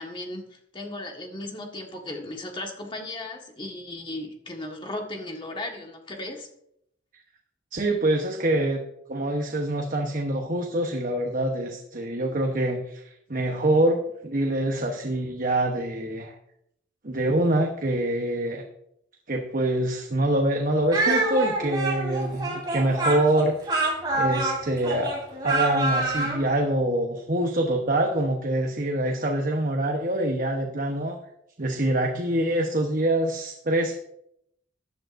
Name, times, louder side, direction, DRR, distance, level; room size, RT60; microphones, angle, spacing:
voice 1, 0.0-6.5, left 1 dB, 25° left, 2 dB, 1.6 m, -36 dB
voice 2, 7.7-8.8 9.1-16.3 17.0-18.6 19.3-31.2 31.6-33.9, right 1 dB, 45° right, 2 dB, 1.0 m, -25 dB
Speech, 20.9-26.4, right 2 dB, 20° right, 3.7 m, -26 dB
14.5 x 10.5 x 2.6 m, 0.76 s
head